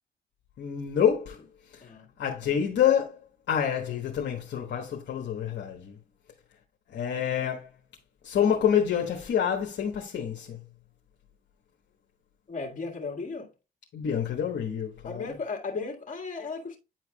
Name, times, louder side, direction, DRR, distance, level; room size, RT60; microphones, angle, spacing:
voice 1, 0.6-1.4 2.2-3.2 3.5-6.0 6.9-7.7 8.2-10.6 13.9-15.3, left 8 dB, 65° left, 1.2 m, -27 dB
voice 2, 1.8-2.1 12.5-13.5 15.0-16.8, left 4 dB, 40° left, 1.7 m, -35 dB
9.1 x 4.6 x 2.3 m
cardioid pair, 90°, 20 cm